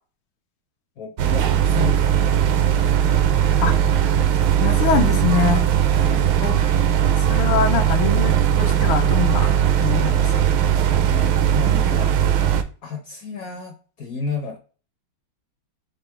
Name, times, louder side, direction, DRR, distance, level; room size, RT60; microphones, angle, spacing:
voice 1, 1.0-2.4 6.0-6.3 10.8-12.2 12.8-14.6, left 5 dB, 65° left, 3 dB, 0.9 m, -32 dB
sound 1, 1.2-12.6, right 10 dB, 80° right, 1.4 m, -18 dB
voice 2, 4.6-5.6 6.4-6.5 7.3-9.5 9.8-10.3, left 6 dB, 90° left, 6 dB, 1.5 m, -23 dB
5.3 x 2.0 x 4.3 m, 0.37 s
omnidirectional pair, 2.2 m